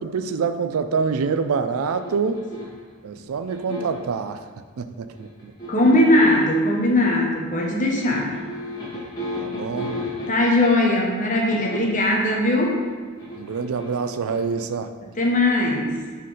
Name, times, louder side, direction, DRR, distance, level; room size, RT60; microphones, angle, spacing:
voice 1, 0.0-2.5 3.0-4.4 4.8-5.5 9.4-9.9 13.4-14.9, right 5 dB, 85° right, 10 dB, 0.4 m, -26 dB
sound 1, 1.8-2.9 3.5-4.1 5.1-6.4 8.0-10.7 11.5-12.1 13.2-14.6, left 1 dB, 20° left, 1.9 m, -34 dB
voice 2, 5.7-8.3 10.3-12.8 15.2-16.0, left 1 dB, 40° left, -1 dB, 1.0 m, -19 dB
5.8 x 4.1 x 4.9 m, 1.5 s
head